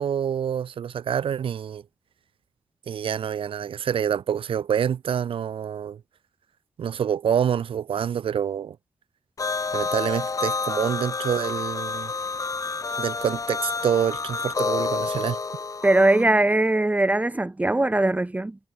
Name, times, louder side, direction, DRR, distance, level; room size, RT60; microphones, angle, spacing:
voice 1, 0.0-1.8 2.9-6.0 6.8-8.8 9.7-12.1 13.0-15.4, right 8 dB, 70° right, 1.3 m, -26 dB
sound 1, 9.4-16.2, left 4 dB, 35° left, 2.5 m, -29 dB
voice 2, 15.8-18.6, right 2 dB, 15° right, 1.4 m, -20 dB
cardioid pair, 85°, 9 cm